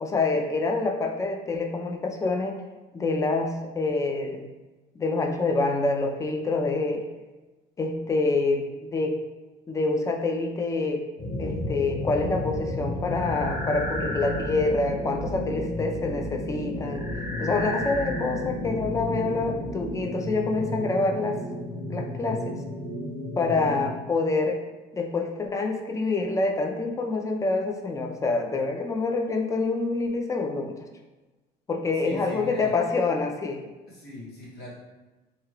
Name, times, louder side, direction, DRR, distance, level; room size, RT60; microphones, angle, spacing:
voice 1, 0.0-2.6 2.9-4.5 5.0-7.0 7.8-9.2 9.7-11.0 11.4-17.1 17.4-21.4 21.9-22.6 23.4-24.6 24.9-30.8 31.7-33.6, left 3 dB, 20° left, 3 dB, 0.4 m, -26 dB
sound 1, 11.2-23.9, left 1 dB, 50° left, 1.2 m, -32 dB
voice 2, 31.9-32.7 33.9-34.7, left 1 dB, 70° left, -7 dB, 1.2 m, -41 dB
2.8 x 2.3 x 3.2 m, 1.2 s
cardioid pair, 110°, 17 cm